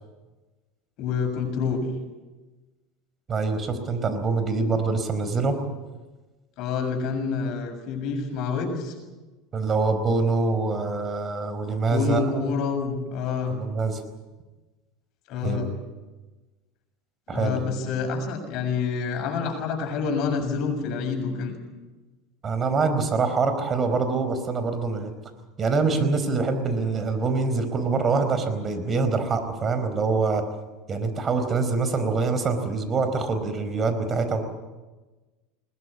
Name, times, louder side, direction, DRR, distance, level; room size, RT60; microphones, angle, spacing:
voice 1, 1.0-1.8 6.6-8.9 11.9-13.6 15.3-15.7 17.3-21.5, left 5 dB, 55° left, 3 dB, 6.9 m, -27 dB
voice 2, 3.3-5.6 9.5-12.3 13.5-14.0 15.4-15.7 17.3-17.6 22.4-25.1 25.6-30.4 30.9-34.4, right 4 dB, 30° right, 9 dB, 4.5 m, -25 dB
21.0 x 20.5 x 8.5 m, 1.2 s
hypercardioid pair, 90°, 0 cm